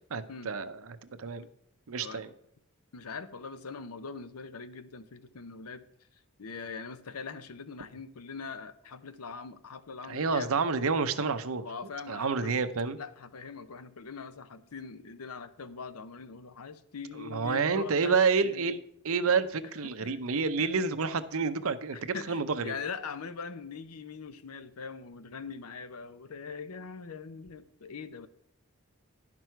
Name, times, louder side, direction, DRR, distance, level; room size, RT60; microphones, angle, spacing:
voice 1, 0.1-1.5 1.9-2.3 10.0-11.6 12.1-13.0 17.2-18.8 19.0-22.7, right 5 dB, 70° right, 11 dB, 0.7 m, -29 dB
voice 2, 2.9-5.8 6.4-10.6 11.1-11.3 11.6-12.6 12.9-18.8 19.3-19.4 19.8-20.2 20.6-20.7 21.9-28.3, left 5 dB, 85° left, 13 dB, 0.7 m, -42 dB
10.5 x 6.1 x 4.5 m, 0.74 s
head